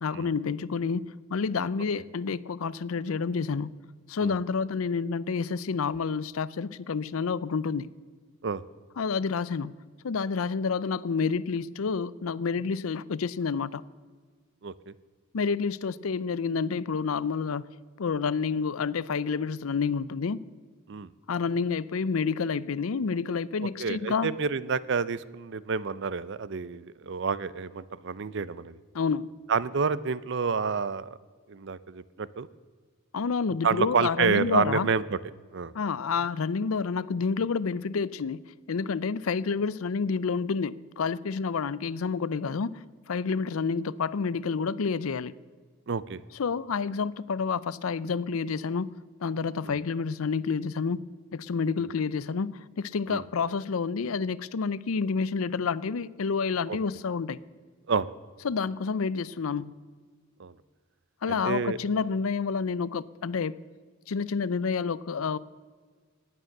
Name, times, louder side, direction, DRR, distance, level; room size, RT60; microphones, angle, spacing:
voice 1, 0.0-3.8 4.1-7.9 9.0-9.7 10.0-13.8 15.3-20.4 21.3-24.3 28.9-29.4 33.1-34.9 35.7-38.4 38.7-45.3 46.3-48.9 49.2-51.0 51.3-57.4 58.4-59.8 61.2-63.6 64.1-65.4, left 5 dB, 85° left, 19 dB, 0.5 m, -29 dB
voice 2, 14.6-14.9 20.9-21.1 23.8-28.8 29.5-31.2 31.5-32.5 33.6-35.2 35.5-35.7 45.9-46.2 49.6-49.8 51.8-51.9 53.1-53.2 56.7-56.8 57.9-58.1 60.4-60.5 61.3-61.8, right 5 dB, 55° right, 18 dB, 0.5 m, -29 dB
19.0 x 9.1 x 6.5 m, 1.5 s
head